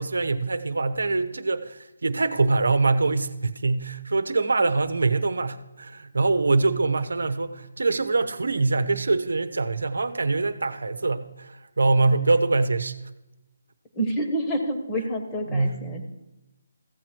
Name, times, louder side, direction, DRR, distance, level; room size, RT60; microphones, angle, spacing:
voice 1, 0.0-13.0 15.5-15.8, right 3 dB, 85° right, 10 dB, 0.8 m, -24 dB
voice 2, 13.9-16.1, right 1 dB, 15° left, 2 dB, 1.4 m, -28 dB
15.0 x 7.4 x 4.6 m, 1.0 s
hypercardioid pair, 160°, 0 cm